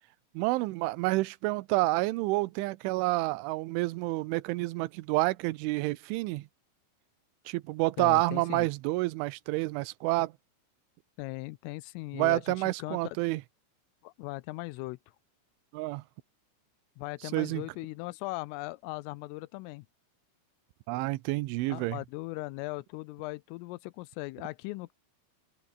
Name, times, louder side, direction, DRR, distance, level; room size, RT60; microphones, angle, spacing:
voice 1, 0.3-6.5 7.5-10.3 12.1-13.4 15.7-16.0 17.3-17.6 20.9-22.0, right 20 dB, 80° right, 3.0 m, -29 dB
voice 2, 8.0-8.7 11.2-13.2 14.0-15.0 17.0-19.9 21.7-24.9, left 22 dB, 85° left, 3.2 m, -39 dB
open air
omnidirectional pair, 6.0 m